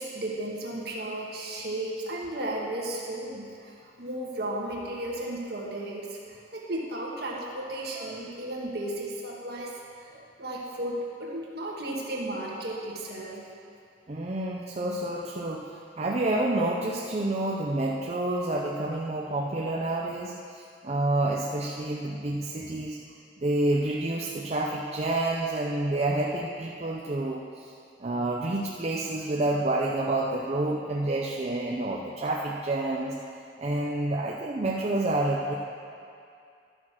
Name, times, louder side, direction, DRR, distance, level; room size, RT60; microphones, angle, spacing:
voice 1, 0.0-9.7 10.0-10.1 10.4-13.5, right 1 dB, 60° right, -2 dB, 1.7 m, -34 dB
voice 2, 14.1-15.7 16.0-23.0 23.4-27.7 28.0-33.2 33.6-35.5, right 2 dB, 35° right, -2 dB, 0.6 m, -28 dB
12.0 x 6.2 x 6.1 m, 2.5 s
head